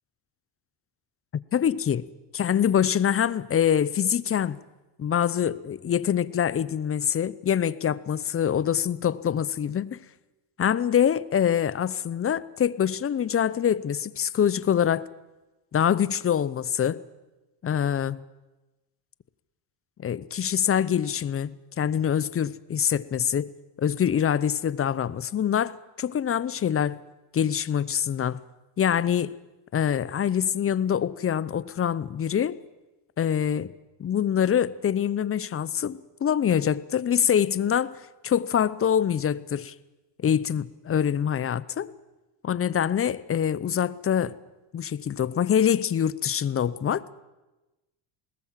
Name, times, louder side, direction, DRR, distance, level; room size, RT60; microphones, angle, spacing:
voice 1, 1.5-2.0 2.3-4.6 5.0-10.0 10.6-15.1 15.7-17.0 17.6-18.2 20.0-23.5 23.8-27.0 27.3-28.4 28.8-29.3 29.7-32.6 33.2-33.7 34.0-38.0 38.2-39.7 40.2-41.9 42.4-44.4 44.7-47.0, left 9 dB, 25° left, 19 dB, 0.7 m, -25 dB
21.0 x 18.5 x 7.5 m, 1.1 s
cardioid pair, 115°, 49 cm